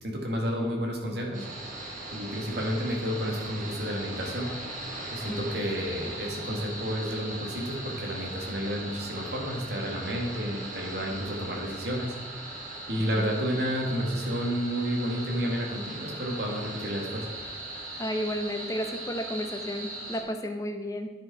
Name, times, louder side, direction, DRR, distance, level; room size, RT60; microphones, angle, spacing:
voice 1, 0.0-1.8 2.1-4.5 5.1-12.6 12.9-17.3, equal, 65° right, 0 dB, 1.7 m, -31 dB
sound 1, 1.3-20.2, right 2 dB, 45° right, 1.5 m, -39 dB
voice 2, 18.0-21.1, equal, 20° left, 5 dB, 0.7 m, -32 dB
10.0 x 5.1 x 4.7 m, 1.3 s
head